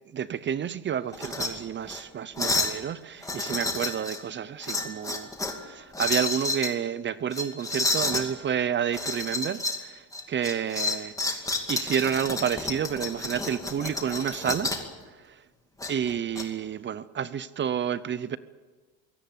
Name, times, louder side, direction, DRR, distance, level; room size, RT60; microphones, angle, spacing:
voice 1, 0.1-14.7 15.1-15.4 15.9-18.4, right 8 dB, 30° right, 0.6 m, -30 dB
sound 1, 1.1-1.5 1.9-2.0 2.4-2.8 3.2-4.2 4.6-5.6 5.9-6.7 7.3-8.3 8.9-9.8 10.1-14.9 15.8-16.4, left 2 dB, 10° left, 2.4 m, -30 dB
22.0 x 17.5 x 8.5 m
cardioid pair, 140°, 39 cm